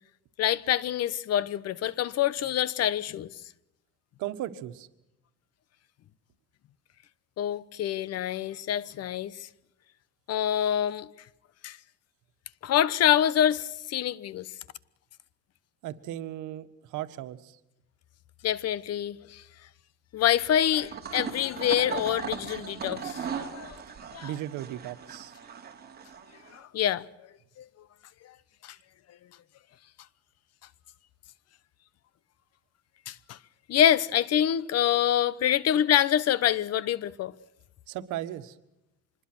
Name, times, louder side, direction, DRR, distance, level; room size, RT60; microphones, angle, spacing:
voice 1, 0.4-3.3 7.4-9.5 10.3-11.1 11.6-11.8 12.6-14.5 18.4-19.4 20.1-23.8 24.1-24.3 26.5-27.0 27.6-27.7 28.6-28.8 33.1-33.4 33.7-37.3, left 10 dB, 55° left, 1.0 m, -26 dB
voice 2, 4.2-4.9 15.8-17.6 24.2-25.3 37.9-38.5, right 13 dB, 80° right, 1.7 m, -36 dB
sound 1, 20.8-26.6, right 7 dB, 30° right, 3.6 m, -38 dB
26.0 x 21.0 x 6.3 m
cardioid pair, 125°, 30 cm